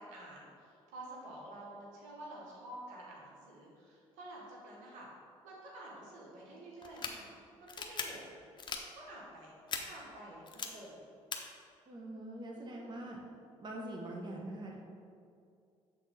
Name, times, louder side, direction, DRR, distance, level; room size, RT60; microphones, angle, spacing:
voice 1, 0.0-5.1 5.4-8.4 8.9-9.5 9.8-11.0 12.5-13.1, right 1 dB, 85° right, -4 dB, 1.4 m, -50 dB
sound 1, 6.8-7.1 7.7-8.0 8.6-8.8 9.7-9.8 10.5-10.7 11.3-11.4, left 6 dB, 40° left, 0.7 m, -38 dB
voice 2, 11.9-13.2 13.6-14.8, right 1 dB, 35° right, -1 dB, 1.0 m, -43 dB
6.9 x 3.6 x 4.1 m, 2.4 s
supercardioid pair, 75°, 12 cm